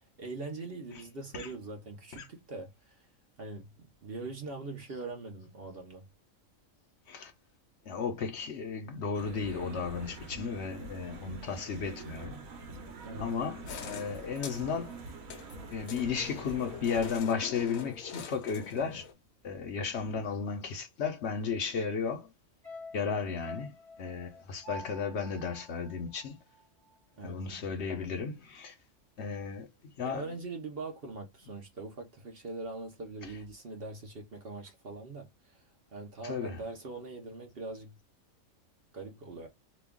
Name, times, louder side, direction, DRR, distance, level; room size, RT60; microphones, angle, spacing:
voice 1, 0.0-3.0 3.4-6.1 13.0-13.4 27.2-27.4 30.0-35.6 35.9-37.9 38.9-39.5, right 3 dB, 50° right, 0.9 m, -42 dB
voice 2, 7.9-12.3 13.2-14.9 15.7-19.0 19.4-22.3 22.9-23.7 24.0-26.4 27.2-28.7 29.2-29.7 30.0-30.2 36.2-36.6, left 5 dB, 60° left, 0.9 m, -34 dB
sound 1, 9.1-17.2, right 3 dB, 90° right, 1.2 m, -45 dB
sound 2, 13.7-19.1, left 7 dB, 85° left, 1.1 m, -45 dB
sound 3, 22.6-27.0 27.3-27.4, left 1 dB, 30° left, 0.8 m, -48 dB
3.0 x 2.3 x 3.4 m
omnidirectional pair, 1.4 m